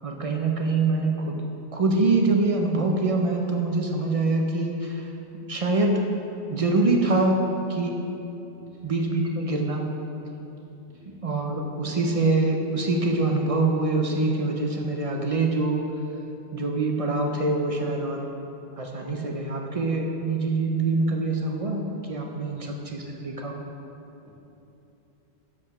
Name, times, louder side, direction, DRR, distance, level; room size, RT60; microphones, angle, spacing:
voice 1, 0.0-1.4 1.7-5.1 5.5-6.0 6.5-7.4 7.7-8.0 8.8-9.9 11.2-15.8 16.5-18.3 18.8-23.6, right 3 dB, 40° right, 1 dB, 0.5 m, -24 dB
voice 2, 8.5-8.9 10.9-11.1 22.5-22.8 23.2-23.5 24.2-24.3, left 3 dB, 75° right, -5 dB, 1.7 m, -51 dB
7.1 x 5.0 x 5.9 m, 2.9 s
omnidirectional pair, 1.1 m